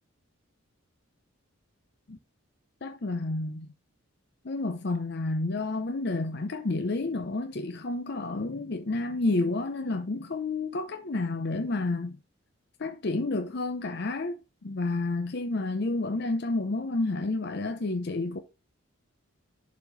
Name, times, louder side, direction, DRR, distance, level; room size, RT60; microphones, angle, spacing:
voice 1, 2.8-3.7 4.4-12.2 12.8-14.4 14.6-18.4, left 2 dB, 50° left, 0.7 m, -30 dB
6.9 x 4.2 x 5.6 m
head